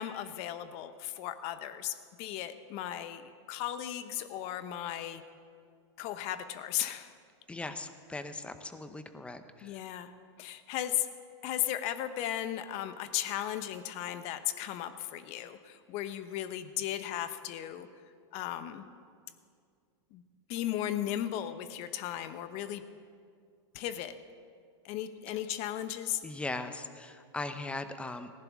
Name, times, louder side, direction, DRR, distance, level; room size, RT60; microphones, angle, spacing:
voice 1, 0.0-5.2 6.0-7.1 9.6-10.1 10.4-11.1 11.4-17.9 18.3-18.8 20.1-20.2 20.5-22.8 23.7-24.2 24.8-26.2, left 12 dB, 45° left, 11 dB, 0.9 m, -36 dB
voice 2, 7.5-9.8 26.2-28.3, left 2 dB, 5° left, 10 dB, 0.8 m, -39 dB
18.5 x 15.0 x 3.6 m, 2.2 s
hypercardioid pair, 125°, 15 cm